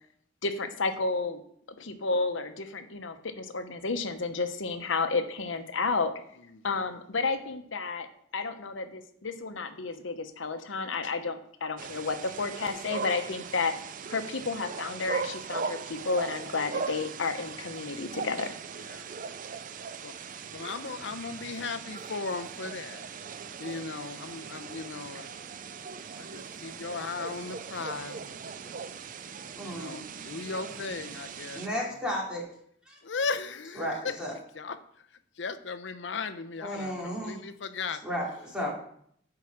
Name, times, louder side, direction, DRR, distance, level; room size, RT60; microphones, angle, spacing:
voice 1, 0.4-1.4 1.8-6.1 6.6-8.1 8.3-13.7 14.1-18.5, left 4 dB, 85° left, 8 dB, 1.0 m, -31 dB
voice 2, 6.5-6.8 18.7-19.1 20.0-20.2 20.5-23.1 23.6-25.3 26.2-28.8 29.6-32.0 33.0-34.2 34.5-35.1 35.4-38.0, left 4 dB, 70° left, 11 dB, 0.7 m, -37 dB
sound 1, 11.8-31.7, right 5 dB, 45° right, 0.4 m, -39 dB
voice 3, 29.6-30.0 31.5-32.4 32.9-33.0 33.8-34.3 36.6-37.4 38.0-38.7, equal, 5° right, -4 dB, 2.6 m, -33 dB
9.0 x 4.8 x 6.0 m, 0.67 s
head